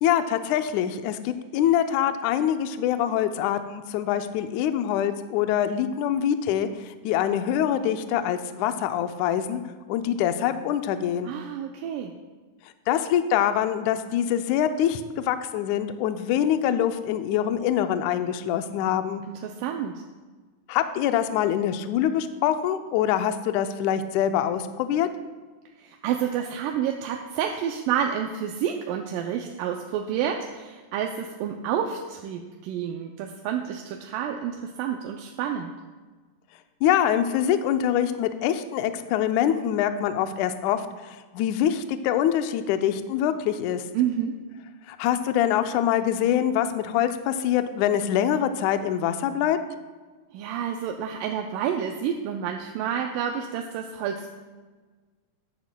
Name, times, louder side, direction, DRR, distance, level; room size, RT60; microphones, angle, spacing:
voice 1, 0.0-9.6 9.9-11.3 12.9-19.2 20.7-25.1 36.8-43.8 44.9-49.6, left 10 dB, 85° left, 9 dB, 1.7 m, -24 dB
voice 2, 11.2-12.1 19.3-20.0 25.8-35.7 43.9-44.5 50.3-54.4, right 8 dB, 80° right, 2 dB, 2.1 m, -29 dB
14.0 x 10.0 x 2.2 m, 1.4 s
omnidirectional pair, 4.0 m